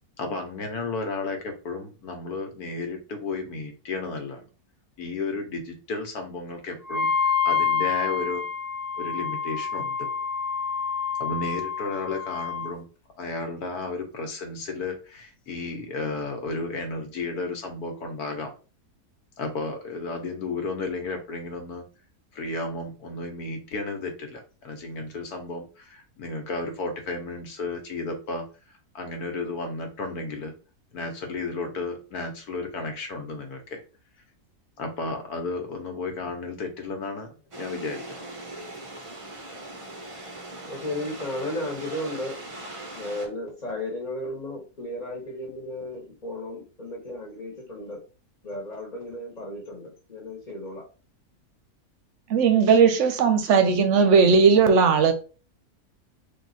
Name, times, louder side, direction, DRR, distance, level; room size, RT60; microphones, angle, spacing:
voice 1, 0.2-4.5 5.0-8.5 9.0-10.1 11.2-12.9 13.2-18.5 19.4-21.8 22.3-28.5 28.9-30.5 30.9-33.8 34.8-38.2, left 3 dB, 80° left, 1.4 m, -33 dB
Wind instrument woodwind instrument, 6.9-12.7, left 6 dB, 60° left, 0.4 m, -27 dB
sound 1, 37.5-43.3, right 2 dB, 40° right, 0.4 m, -40 dB
voice 2, 40.7-42.4 42.9-48.0 48.4-50.8, left 1 dB, 30° left, 1.1 m, -34 dB
voice 3, 52.3-55.1, right 5 dB, 65° right, 0.8 m, -18 dB
3.7 x 2.7 x 4.0 m
omnidirectional pair, 1.6 m